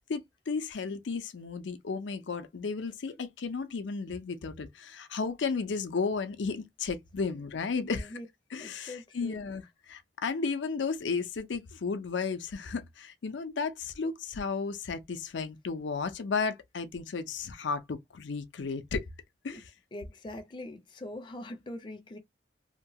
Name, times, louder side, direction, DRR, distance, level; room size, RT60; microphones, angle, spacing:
voice 1, 0.0-8.2 8.5-19.0 19.4-19.7, left 4 dB, 80° left, 0.5 m, -34 dB
voice 2, 7.8-8.2 8.6-9.4 19.5-19.6 19.9-22.2, left 1 dB, 25° left, 0.5 m, -43 dB
2.8 x 2.2 x 2.7 m
head